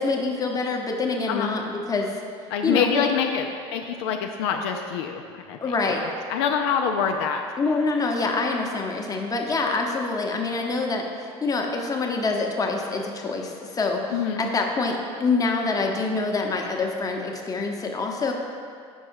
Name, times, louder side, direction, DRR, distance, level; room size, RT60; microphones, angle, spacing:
voice 1, 0.0-2.2 2.6-3.1 5.6-6.0 7.6-14.0 14.4-18.3, left 3 dB, 25° left, 1 dB, 0.9 m, -26 dB
voice 2, 2.5-5.6 5.8-5.9 6.3-7.4 14.1-14.5, left 7 dB, 75° left, 4 dB, 0.4 m, -25 dB
5.4 x 4.7 x 4.6 m, 2.3 s
hypercardioid pair, 80°, 14 cm